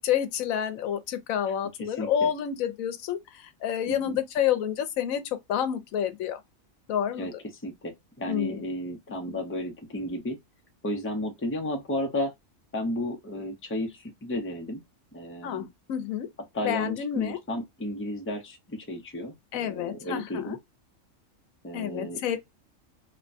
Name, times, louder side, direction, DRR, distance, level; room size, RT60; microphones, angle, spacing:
voice 1, 0.0-6.4 6.9-7.3 8.3-8.6 15.4-16.3 16.6-17.4 19.5-20.6 21.7-22.4, left 9 dB, 90° left, 1.0 m, -29 dB
voice 2, 1.5-2.3 3.9-4.2 7.2-10.4 10.8-12.3 12.7-14.8 15.1-15.7 16.5-20.6 21.6-22.4, left 1 dB, 15° left, 0.5 m, -33 dB
2.9 x 2.2 x 2.4 m
omnidirectional pair, 1.4 m